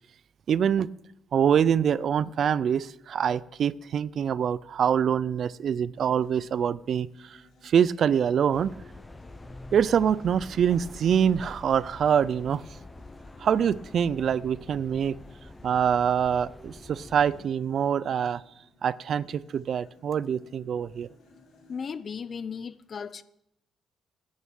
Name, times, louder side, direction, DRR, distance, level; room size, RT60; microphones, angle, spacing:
voice 1, 0.5-0.9 1.3-7.4 7.6-8.7 9.7-12.6 13.4-15.2 15.6-18.4 18.8-21.1, right 8 dB, 65° right, 0.4 m, -25 dB
sound 1, 5.9-22.0, left 3 dB, 75° left, 5.6 m, -58 dB
sound 2, 8.5-17.4, left 2 dB, 20° left, 0.8 m, -46 dB
voice 2, 21.7-23.2, left 6 dB, 50° left, 0.7 m, -36 dB
10.5 x 6.8 x 8.9 m
cardioid pair, 70°, 0 cm